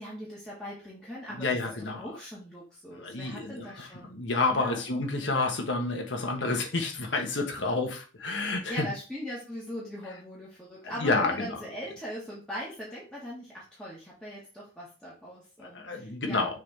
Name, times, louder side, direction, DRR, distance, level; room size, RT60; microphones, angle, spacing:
voice 1, 0.0-4.2 4.5-4.9 8.7-16.6, equal, 5° left, -7 dB, 1.7 m, -40 dB
voice 2, 1.4-2.0 3.0-8.9 11.0-11.6 15.6-16.6, left 3 dB, 70° left, 3 dB, 1.3 m, -29 dB
6.4 x 3.7 x 4.1 m, 0.35 s
head